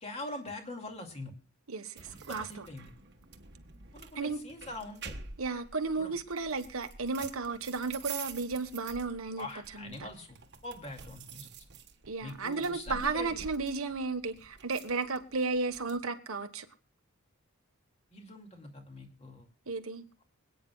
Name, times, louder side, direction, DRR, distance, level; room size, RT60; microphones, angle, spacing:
voice 1, 0.0-1.3 2.1-2.9 3.9-5.2 6.0-6.1 9.4-10.4 10.6-11.5 12.2-13.4 18.1-19.5, left 2 dB, 30° left, 2.4 m, -43 dB
voice 2, 1.7-2.7 4.1-4.4 5.4-9.5 9.7-10.1 12.1-16.7 19.7-20.0, right 4 dB, 70° right, 1.3 m, -34 dB
sound 1, 2.0-16.0, right 6 dB, 50° right, 1.3 m, -48 dB
25.5 x 9.3 x 2.4 m
head